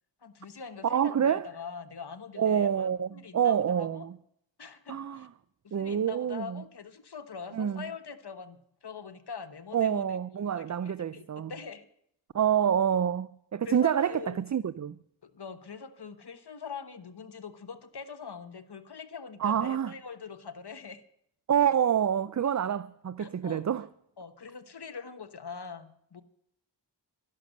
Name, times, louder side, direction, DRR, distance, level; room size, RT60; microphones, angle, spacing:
voice 1, 0.2-4.1 4.6-5.3 5.6-10.0 10.5-11.9 13.6-14.4 15.2-21.0 23.2-23.6 24.2-26.2, left 6 dB, 60° left, 1.3 m, -43 dB
voice 2, 0.8-1.5 2.4-4.1 4.9-5.3 5.7-6.6 7.5-7.8 9.7-11.5 12.3-15.0 19.4-19.9 21.5-23.9, right 9 dB, 40° right, 0.5 m, -27 dB
13.0 x 11.0 x 6.5 m
wide cardioid pair, 60°, 45 cm